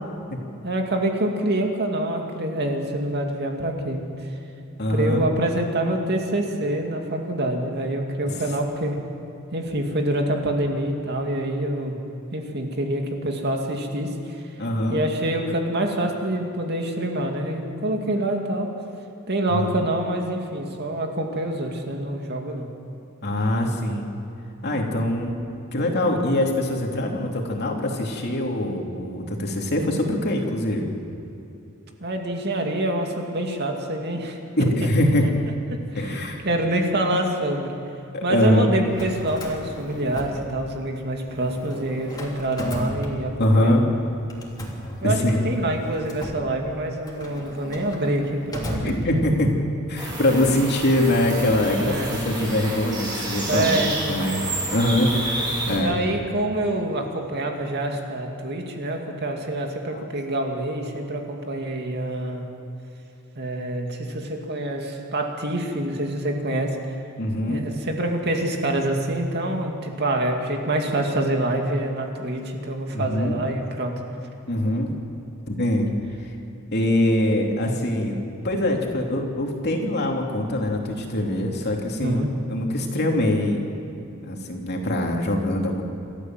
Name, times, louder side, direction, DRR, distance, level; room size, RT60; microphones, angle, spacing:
voice 1, 0.6-4.0 4.9-9.0 9.5-12.0 12.3-14.4 14.9-18.7 19.3-22.7 32.0-34.4 35.7-35.8 36.4-37.8 38.2-43.8 45.0-45.2 45.4-49.0 51.8-52.1 53.5-54.2 55.7-62.5 63.4-66.8 67.5-73.9 82.0-82.3, right 1 dB, 50° right, 2 dB, 2.4 m, -26 dB
voice 2, 4.8-5.3 8.3-8.5 14.6-15.0 19.5-19.7 23.2-24.1 24.6-25.4 25.7-31.0 34.6-35.3 36.0-36.4 38.1-38.7 43.4-43.9 45.0-45.5 48.8-49.5 49.9-56.0 59.9-60.0 67.2-67.7 72.9-73.4 74.5-74.9 75.5-75.9 76.2-76.3 76.7-82.2 82.5-83.6 84.2-85.8, left 1 dB, 50° left, 1 dB, 2.9 m, -23 dB
Drawer open or close, 38.8-41.0 41.3-43.7 44.3-49.6, equal, 20° left, 3.0 m, -35 dB
sound 1, 50.0-55.8, right 1 dB, 20° right, 6.3 m, -30 dB
28.0 x 13.5 x 7.7 m, 2.9 s
head